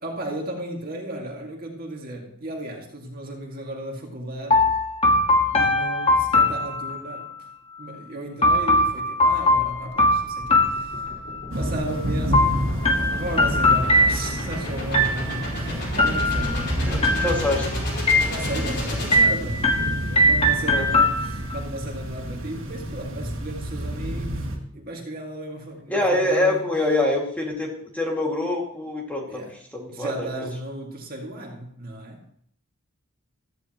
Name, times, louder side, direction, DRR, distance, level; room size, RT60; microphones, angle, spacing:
voice 1, 0.0-4.7 5.5-7.5 7.8-11.1 11.5-12.7 13.1-17.3 18.2-24.5 24.7-26.7 29.3-29.6 29.9-32.2, right 1 dB, 40° right, 2.2 m, -35 dB
sound 1, 4.5-7.3 8.4-11.4 12.3-14.5 14.9-15.6 16.0-16.7 17.0-17.7 18.1-18.7 19.1-21.6, left 1 dB, 25° left, 1.7 m, -21 dB
sound 2, 9.6-20.0, left 1 dB, 50° left, 4.7 m, -34 dB
sound 3, 11.5-24.6, equal, 55° right, 2.5 m, -29 dB
voice 2, 16.8-17.7 20.6-20.8 25.9-29.4 29.7-30.5, left 2 dB, 5° left, 2.3 m, -25 dB
15.5 x 14.5 x 3.1 m
head